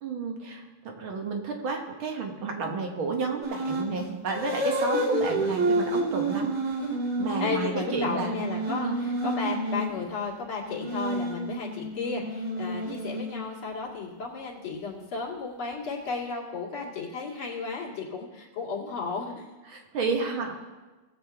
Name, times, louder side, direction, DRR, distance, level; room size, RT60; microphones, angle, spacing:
voice 1, 0.0-6.6 7.2-8.4 8.8-9.0 19.7-20.5, right 4 dB, 70° right, 2 dB, 2.1 m, -31 dB
sound 1, 3.4-3.9 4.3-9.9 10.6-13.6, right 1 dB, 35° right, 2.0 m, -29 dB
voice 2, 4.9-5.2 7.4-19.5, left 4 dB, 70° left, -4 dB, 2.9 m, -34 dB
18.5 x 7.4 x 3.5 m, 1.2 s
omnidirectional pair, 2.4 m